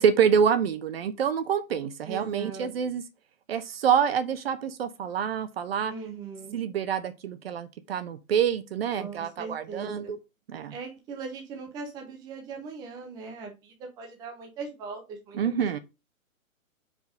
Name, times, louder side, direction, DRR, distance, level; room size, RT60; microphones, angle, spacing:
voice 1, 0.0-3.0 3.5-5.9 6.5-10.2 10.5-10.7 15.3-15.8, right 7 dB, 45° right, 0.8 m, -26 dB
voice 2, 2.1-2.7 5.9-6.6 8.9-10.1 10.7-15.7, right 5 dB, 10° right, 0.6 m, -40 dB
5.0 x 3.9 x 5.0 m
hypercardioid pair, 145°, 41 cm